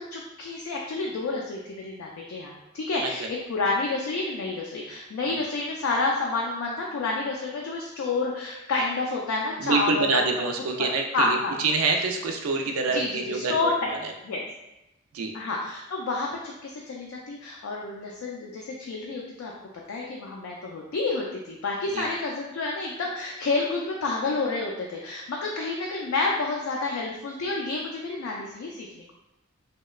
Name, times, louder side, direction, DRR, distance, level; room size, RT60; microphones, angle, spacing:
voice 1, 0.1-10.3 10.8-11.5 12.9-13.9 14.2-14.4 15.3-19.5 19.9-29.1, left 3 dB, 70° left, -2 dB, 0.3 m, -29 dB
voice 2, 9.6-13.6 13.9-14.0 15.1-15.3 21.9-22.1, right 4 dB, 85° right, 3 dB, 0.4 m, -26 dB
2.8 x 2.1 x 2.3 m, 0.94 s
head